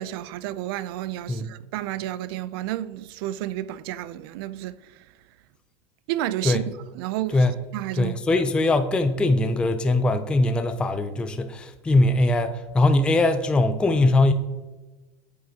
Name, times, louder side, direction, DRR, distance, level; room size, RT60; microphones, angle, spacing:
voice 1, 0.0-4.8 6.1-7.5 7.7-8.1, right 13 dB, 75° right, 0.4 m, -31 dB
voice 2, 7.9-14.3, left 2 dB, 10° left, 0.3 m, -21 dB
8.8 x 6.4 x 2.7 m
supercardioid pair, 150°, 12 cm